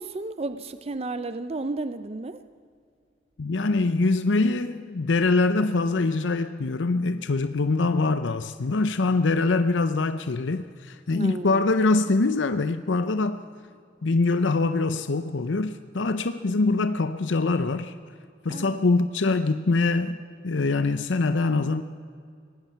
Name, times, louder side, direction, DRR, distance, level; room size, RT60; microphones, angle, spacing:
voice 1, 0.0-2.4 11.1-11.6 16.5-16.6 18.5-18.8, right 2 dB, 35° right, 12 dB, 0.5 m, -33 dB
voice 2, 3.4-13.4 14.0-17.9 18.4-21.8, left 3 dB, 85° left, 10 dB, 0.7 m, -24 dB
24.0 x 19.0 x 5.7 m, 2.3 s
head